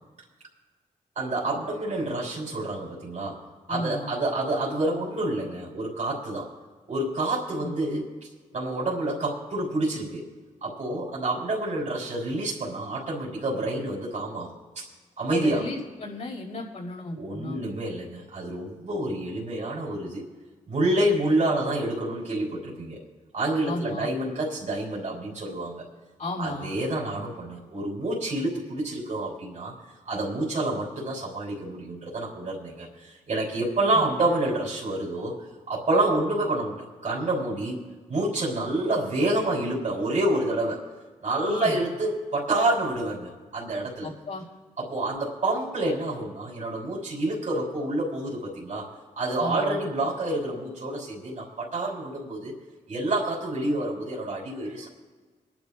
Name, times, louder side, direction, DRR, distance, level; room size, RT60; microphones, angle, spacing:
voice 1, 1.2-3.4 3.7-6.5 6.9-8.1 8.5-10.2 10.6-14.6 15.2-15.7 17.2-20.2 20.7-23.0 23.3-25.9 26.4-29.7 30.1-35.3 35.7-36.8 37.0-37.8 38.1-40.8 41.2-44.1 44.8-48.9 49.2-52.5 52.9-54.9, right 2 dB, 60° right, -4 dB, 3.5 m, -28 dB
voice 2, 3.7-4.1 7.6-7.7 15.3-17.6 23.6-24.1 26.2-26.7 33.9-34.0 41.4-41.8 44.0-44.4 49.4-49.8, left 1 dB, 65° left, -7 dB, 4.9 m, -34 dB
27.5 x 11.0 x 2.4 m, 1.4 s
cardioid pair, 50°, 14 cm